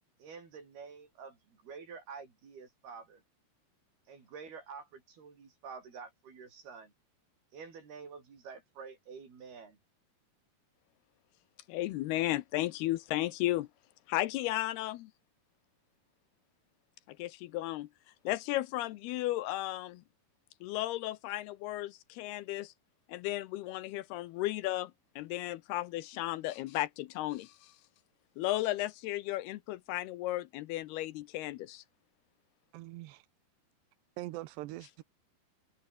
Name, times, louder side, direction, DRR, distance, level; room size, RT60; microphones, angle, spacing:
voice 1, 0.2-3.2 4.1-6.9 7.5-9.8, right 5 dB, 65° right, 7.2 m, -48 dB
voice 2, 11.7-13.7 14.1-15.1 17.1-17.9 18.2-20.0 20.6-22.7 23.1-27.7 28.4-31.8, left 16 dB, 75° left, 2.6 m, -34 dB
voice 3, 32.7-33.2 34.2-35.0, right 17 dB, 90° right, 3.0 m, -42 dB
omnidirectional pair, 4.9 m